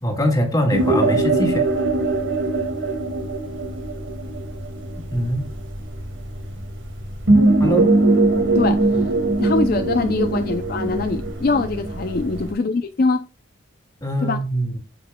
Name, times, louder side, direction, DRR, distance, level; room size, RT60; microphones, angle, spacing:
voice 1, 0.0-1.6 5.1-5.5 7.6-7.9 14.0-14.8, equal, 20° left, 1.8 m, -22 dB
sound 1, 0.7-12.5, right 2 dB, 65° right, 2.0 m, -21 dB
voice 2, 8.5-9.0 9.4-13.3 14.2-14.4, left 3 dB, 45° left, 0.4 m, -23 dB
10.5 x 5.1 x 2.2 m
head